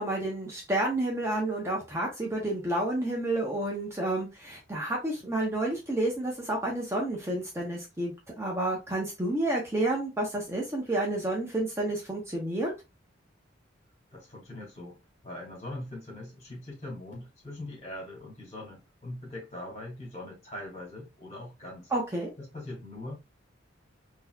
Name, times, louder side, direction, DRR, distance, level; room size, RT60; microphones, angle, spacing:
voice 1, 0.0-12.7 21.9-22.3, right 1 dB, 15° right, 0.7 m, -30 dB
voice 2, 14.1-15.0 15.2-21.9 22.4-23.2, left 1 dB, 35° left, 2.2 m, -41 dB
3.8 x 2.7 x 2.2 m
head